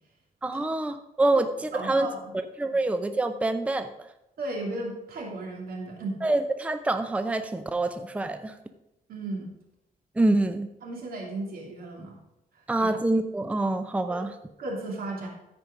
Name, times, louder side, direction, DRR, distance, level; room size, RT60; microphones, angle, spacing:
voice 1, 0.4-2.1 2.3-3.9 6.2-8.6 10.2-10.7 12.7-14.3, right 2 dB, 10° right, 9 dB, 0.5 m, -26 dB
voice 2, 1.7-2.3 4.4-6.2 9.1-9.5 10.8-12.2 12.8-12.9 14.6-15.3, right 2 dB, 80° right, -1 dB, 2.9 m, -35 dB
13.5 x 5.2 x 5.2 m, 0.88 s
cardioid pair, 110°, 15 cm